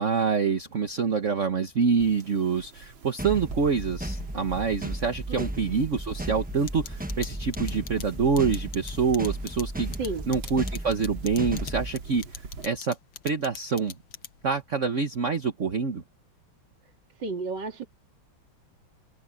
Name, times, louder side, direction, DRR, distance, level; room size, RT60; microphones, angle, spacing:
voice 1, 0.0-9.9 10.3-13.0 13.2-14.0 14.4-16.0, right 5 dB, 40° right, 1.5 m, -26 dB
sound 1, 2.0-12.7, right 4 dB, 75° right, 2.9 m, -46 dB
sound 2, 3.2-11.9, right 1 dB, 10° right, 0.6 m, -35 dB
sound 3, 6.7-14.6, left 10 dB, 80° left, 1.9 m, -41 dB
voice 2, 17.2-17.9, right 3 dB, 60° right, 3.2 m, -32 dB
open air
omnidirectional pair, 2.2 m